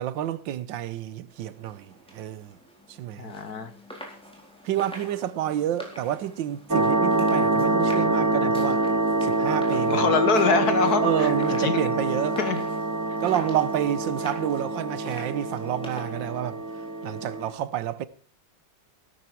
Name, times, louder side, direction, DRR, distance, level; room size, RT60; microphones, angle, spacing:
voice 1, 0.0-2.6 2.9-3.3 4.7-8.8 9.2-10.1 11.0-12.4 13.2-16.6 17.0-18.1, right 11 dB, 85° right, 1.6 m, -29 dB
sound 1, 1.3-17.3, equal, 5° left, 4.2 m, -45 dB
voice 2, 3.2-3.7 9.9-11.3 11.6-11.8 12.4-12.6, left 5 dB, 60° left, 1.8 m, -24 dB
sound 2, 6.7-17.5, right 2 dB, 15° right, 0.8 m, -25 dB
16.5 x 13.0 x 4.6 m
omnidirectional pair, 2.0 m